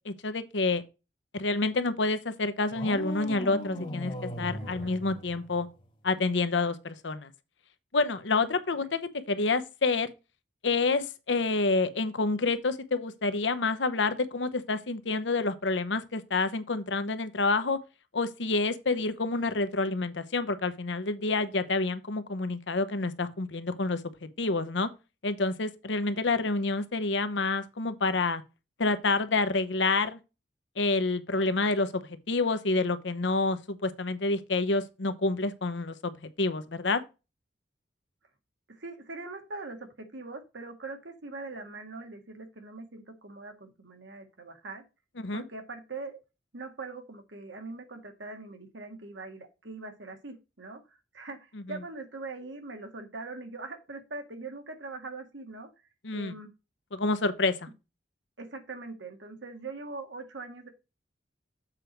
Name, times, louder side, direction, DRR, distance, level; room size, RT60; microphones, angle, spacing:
voice 1, 0.1-0.8 1.3-5.7 6.0-7.3 7.9-10.1 10.6-17.8 18.1-24.9 25.2-28.4 28.8-30.2 30.8-37.0 45.2-45.4 51.5-51.8 56.0-56.4 56.9-57.7, left 3 dB, 80° left, 0.9 m, -28 dB
sound 1, 2.7-5.8, left 1 dB, 30° left, 1.7 m, -38 dB
voice 2, 4.6-4.9 8.4-8.5 38.7-44.8 45.3-46.2 46.5-55.7 56.1-56.5 58.4-60.7, right 3 dB, 80° right, 1.7 m, -42 dB
7.5 x 4.5 x 5.1 m
head